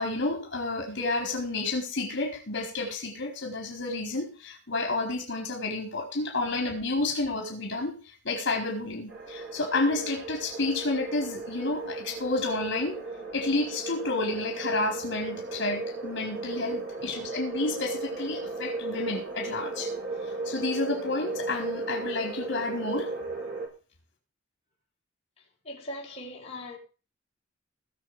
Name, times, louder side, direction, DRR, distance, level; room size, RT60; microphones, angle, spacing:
voice 1, 0.0-13.0 13.3-19.9 20.2-23.1, left 2 dB, 65° left, 4.5 m, -30 dB
sound 1, 9.1-23.7, right 3 dB, 60° right, 5.8 m, -36 dB
voice 2, 25.6-26.8, left 1 dB, 30° left, 5.3 m, -40 dB
20.0 x 7.2 x 5.0 m
head